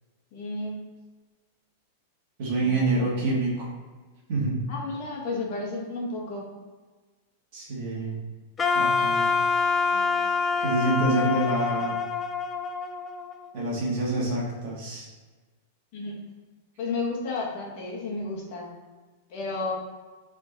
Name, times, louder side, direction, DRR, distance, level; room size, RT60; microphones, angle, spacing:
voice 1, 0.3-0.8 2.5-3.1 4.7-6.5 9.8-10.2 15.9-16.2 16.8-18.7 19.3-19.7, left 3 dB, 40° left, -2 dB, 1.4 m, -33 dB
voice 2, 2.4-3.7 4.3-4.7 7.5-8.2 8.8-9.3 10.6-12.0 13.5-15.1, right 2 dB, 45° right, -3 dB, 1.8 m, -27 dB
Wind instrument woodwind instrument, 8.6-13.6, left 5 dB, 10° left, 0.3 m, -26 dB
7.1 x 3.8 x 4.0 m, 1.3 s
supercardioid pair, 175°, 0 cm